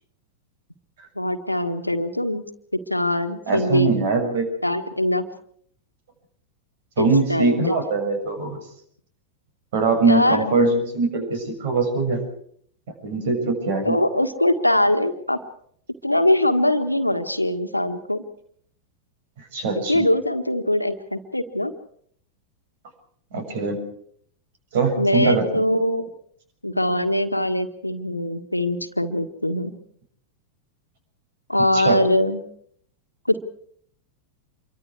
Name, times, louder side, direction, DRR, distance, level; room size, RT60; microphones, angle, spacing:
voice 1, 1.1-2.4 2.9-4.0 4.6-5.3 7.0-7.8 10.0-10.4 13.8-15.4 16.0-18.2 19.9-21.7 25.0-26.0 26.6-29.7 31.5-32.4 33.3-33.4, left 1 dB, 85° left, 8 dB, 1.6 m, -22 dB
voice 2, 3.5-4.5 7.0-8.6 9.7-12.2 13.0-14.0 19.5-20.0 23.3-23.8 24.7-25.6 31.7-32.0, right 4 dB, 55° right, 6 dB, 6.9 m, -22 dB
26.5 x 23.5 x 4.8 m, 0.64 s
figure-of-eight pair, 90°, 0 cm